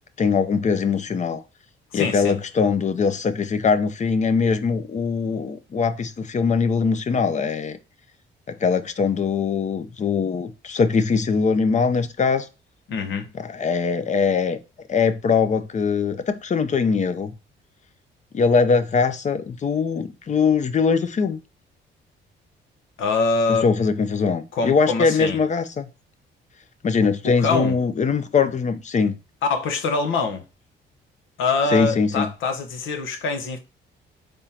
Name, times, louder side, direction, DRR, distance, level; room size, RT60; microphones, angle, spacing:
voice 1, 0.2-1.4 1.9-7.8 8.5-12.5 13.4-14.6 14.9-17.3 18.3-21.4 23.5-25.9 26.8-29.2 31.7-32.3, left 5 dB, 35° left, 0.6 m, -22 dB
voice 2, 1.9-2.3 12.9-13.3 23.0-23.7 24.5-25.4 27.0-27.8 29.4-30.4 31.4-33.6, left 4 dB, 80° left, 1.0 m, -24 dB
5.0 x 3.6 x 2.8 m
cardioid pair, 90°, 20 cm